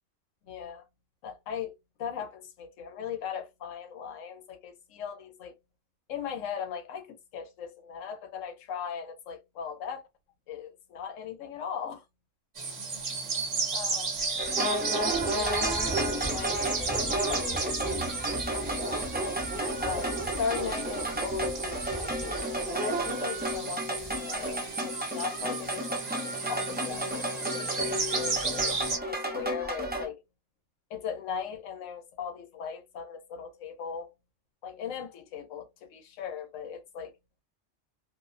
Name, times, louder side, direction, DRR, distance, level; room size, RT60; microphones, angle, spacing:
voice 1, 0.4-0.8 1.2-1.7 2.0-5.5 6.1-10.0 10.5-12.0 13.7-19.1 19.8-28.7 29.1-30.2 30.9-34.1 34.6-37.1, left 7 dB, 85° left, 1.0 m, -39 dB
sound 1, 12.6-29.0, right 4 dB, 40° right, 0.7 m, -34 dB
sound 2, 14.4-30.1, right 1 dB, 15° right, 0.3 m, -32 dB
2.7 x 2.0 x 2.4 m
omnidirectional pair, 1.3 m